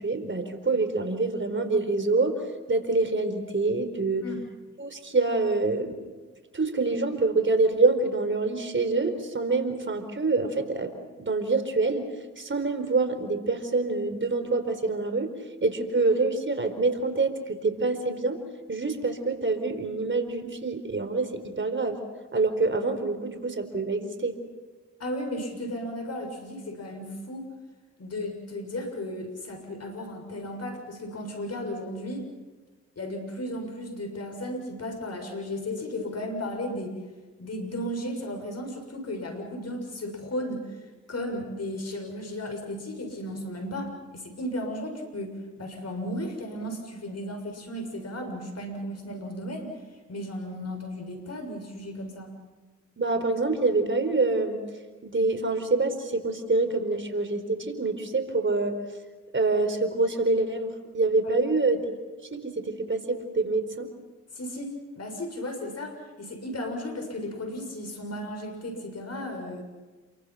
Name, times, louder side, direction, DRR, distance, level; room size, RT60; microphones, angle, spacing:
voice 1, 0.0-2.4 2.7-4.2 4.8-5.9 6.5-10.9 11.2-12.1 12.4-15.3 15.6-18.4 18.7-22.0 22.3-24.3 53.0-54.6 55.0-58.8 59.3-61.9 62.3-63.9, right 3 dB, 35° right, 8 dB, 4.6 m, -26 dB
voice 2, 25.0-27.5 28.0-32.3 33.0-37.0 37.4-40.6 41.1-49.7 50.1-52.3 64.3-69.6, left 1 dB, 50° left, 4 dB, 7.0 m, -35 dB
28.5 x 24.0 x 5.9 m, 1.3 s
supercardioid pair, 45°, 33 cm